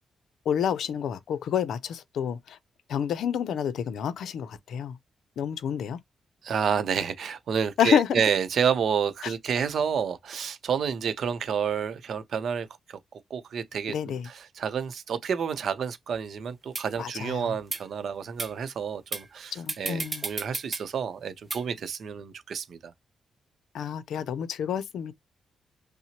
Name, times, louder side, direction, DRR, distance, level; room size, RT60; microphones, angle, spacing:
voice 1, 0.5-2.6 2.9-5.0 5.4-6.0 7.8-8.2 9.2-9.3 13.9-14.3 17.0-17.6 19.5-20.2 23.7-25.1, left 8 dB, 85° left, 0.5 m, -28 dB
voice 2, 6.4-12.7 13.3-22.9, right 7 dB, 60° right, 0.6 m, -29 dB
sound 1, 16.1-16.2 16.7-16.8 17.6-17.8 18.4-18.5 19.1-19.3 19.7-20.8 21.5-21.6, right 3 dB, 25° right, 0.7 m, -32 dB
5.7 x 2.0 x 2.8 m
wide cardioid pair, 160°, 0 cm